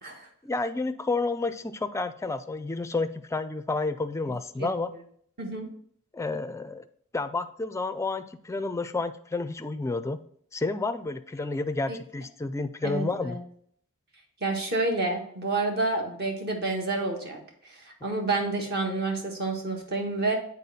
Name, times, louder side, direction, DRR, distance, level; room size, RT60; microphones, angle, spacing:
voice 1, 0.4-4.9 6.1-6.8 7.1-10.2 10.5-13.4, left 3 dB, 15° left, 10 dB, 0.4 m, -30 dB
voice 2, 5.4-5.7 11.9-12.0 12.8-13.4 14.4-17.4 18.0-20.4, right 2 dB, 45° right, 1 dB, 1.5 m, -29 dB
8.4 x 4.3 x 4.1 m, 0.62 s
head